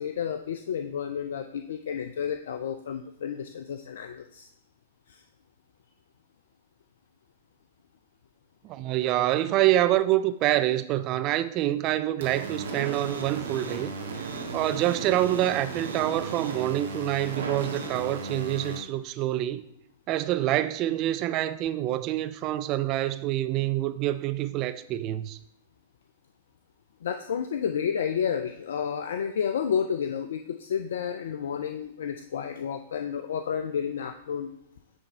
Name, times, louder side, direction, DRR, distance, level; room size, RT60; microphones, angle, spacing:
voice 1, 0.0-4.5 5.1-5.2 27.0-34.5, left 7 dB, 65° left, 0.4 m, -31 dB
voice 2, 8.6-13.9 14.5-19.6 20.1-25.4, right 14 dB, 35° right, 0.5 m, -26 dB
sound 1, 12.2-18.8, right 3 dB, 70° right, 1.4 m, -35 dB
9.4 x 3.5 x 4.3 m
figure-of-eight pair, 105°, 0 cm